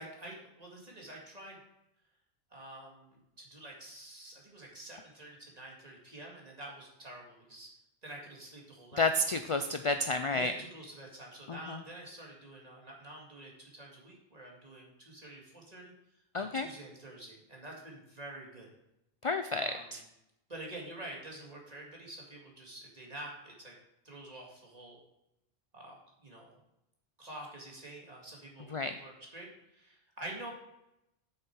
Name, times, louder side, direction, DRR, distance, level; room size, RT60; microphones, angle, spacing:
voice 1, 0.0-1.6 2.5-7.7 8.0-9.0 10.3-15.9 16.4-18.7 19.6-19.9 20.5-23.7 24.0-25.0 25.7-26.6 27.2-30.5, right 1 dB, 40° right, -2 dB, 2.2 m, -47 dB
voice 2, 9.0-10.5 11.5-11.8 16.3-16.7 19.2-20.0 28.7-28.9, left 2 dB, 50° left, 8 dB, 0.4 m, -31 dB
8.1 x 6.5 x 4.6 m, 0.85 s
omnidirectional pair, 1.1 m